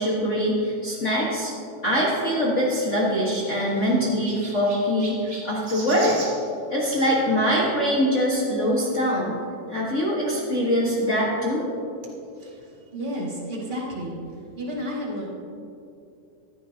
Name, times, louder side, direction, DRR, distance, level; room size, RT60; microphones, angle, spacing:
voice 1, 0.0-1.5 1.8-6.2 6.7-9.4 9.7-11.6, equal, 65° left, -6 dB, 0.7 m, -23 dB
Chirp tweet, 2.9-7.2 8.3-8.5 9.2-9.3 9.5-9.6 10.9-11.0, right 2 dB, 60° right, 0.5 m, -41 dB
voice 2, 12.9-14.2 14.6-15.3, equal, 20° right, -5 dB, 1.4 m, -31 dB
14.0 x 11.0 x 2.8 m, 2.6 s
omnidirectional pair, 3.7 m